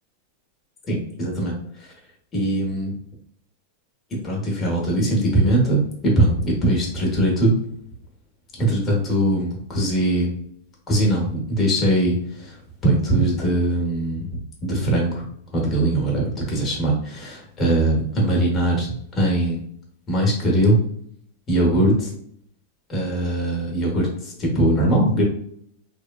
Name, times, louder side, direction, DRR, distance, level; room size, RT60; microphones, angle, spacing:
voice 1, 0.9-1.9 2.3-2.9 4.2-7.6 8.6-10.4 10.9-15.3 15.5-18.9 19.1-19.6 20.1-20.8 21.5-22.1 22.9-25.2, right 1 dB, 20° left, -2 dB, 1.0 m, -21 dB
3.0 x 2.2 x 2.2 m, 0.67 s
supercardioid pair, 140°, 0 cm